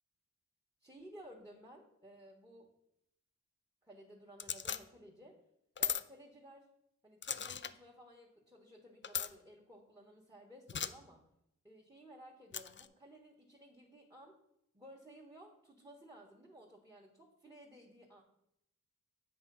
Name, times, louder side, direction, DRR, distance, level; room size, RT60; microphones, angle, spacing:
voice 1, 0.8-2.7 3.8-5.4 5.8-6.7 7.0-11.2 11.6-14.4 14.7-18.2, right 1 dB, 10° right, -1 dB, 1.3 m, -56 dB
sound 1, 4.4-4.8 5.8-6.0 7.2-7.7 9.0-9.3 10.7-10.9 12.5-12.9, left 8 dB, 35° left, 0.4 m, -37 dB
8.0 x 3.3 x 5.4 m, 0.78 s
cardioid pair, 50°, 32 cm